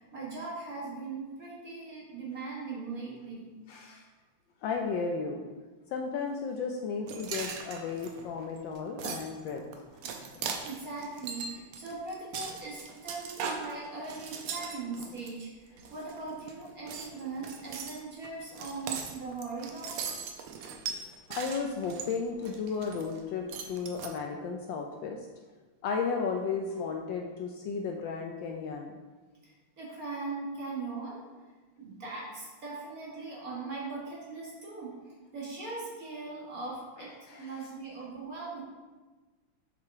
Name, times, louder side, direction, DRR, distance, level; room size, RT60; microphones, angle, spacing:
voice 1, 0.0-3.5 10.6-20.1 29.4-31.2 31.8-35.0 35.3-37.1 37.4-38.6, right 3 dB, 45° right, -5 dB, 1.9 m, -40 dB
voice 2, 3.7-4.1 4.6-5.4 5.9-9.6 10.3-10.5 14.6-14.7 21.3-25.3 25.8-29.0 37.3-37.6, left 5 dB, 75° left, 2 dB, 1.1 m, -34 dB
sound 1, 7.1-15.3 15.8-16.5 16.9-23.2 23.5-24.1, right 6 dB, 90° right, 1.6 m, -39 dB
7.6 x 4.8 x 3.5 m, 1.3 s
omnidirectional pair, 2.4 m